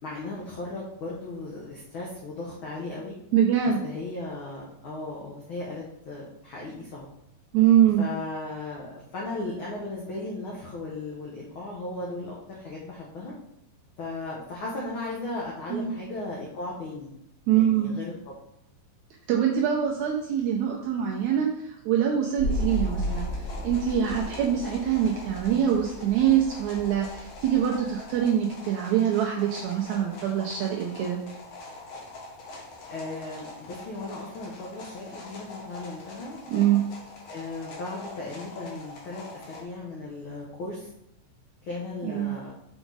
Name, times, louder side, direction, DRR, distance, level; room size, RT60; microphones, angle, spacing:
voice 1, 0.0-3.2 3.8-7.1 8.0-13.3 14.0-17.1 17.5-18.3 32.6-36.4 37.3-40.9 41.6-42.5, left 2 dB, 85° left, -4 dB, 1.1 m, -36 dB
voice 2, 3.3-3.8 7.5-8.0 15.7-15.9 17.5-17.9 19.3-31.2 36.5-36.8 42.0-42.3, right 9 dB, 75° right, 0 dB, 1.8 m, -24 dB
sound 1, 22.4-39.6, left 2 dB, 60° left, 1.9 m, -44 dB
sound 2, 22.4-28.3 28.7-28.8, equal, 20° left, 2.2 m, -34 dB
6.1 x 5.0 x 3.9 m, 0.79 s
omnidirectional pair, 3.8 m